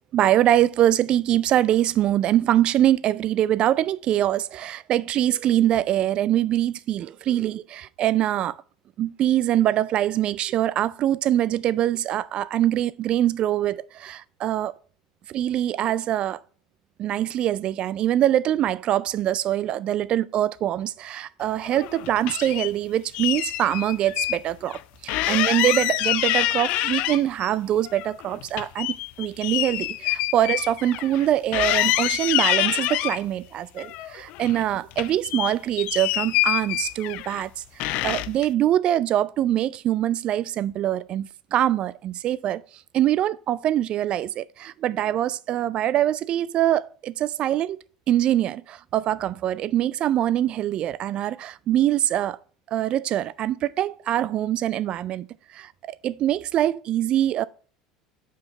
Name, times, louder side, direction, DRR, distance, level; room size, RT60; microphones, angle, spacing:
voice 1, 0.1-8.5 9.0-14.7 15.3-16.4 17.0-42.6 42.9-47.8 48.1-52.4 52.7-55.3 55.5-57.4, right 12 dB, 45° right, 0.4 m, -24 dB
sound 1, 21.6-22.7 23.1-24.4 24.7-24.8 25.1-27.5 27.8-31.3 31.5-33.2 33.8-34.6 34.9-37.4 37.8-38.5, left 16 dB, 60° left, 0.3 m, -26 dB
5.7 x 4.7 x 5.4 m
hypercardioid pair, 75°, 2 cm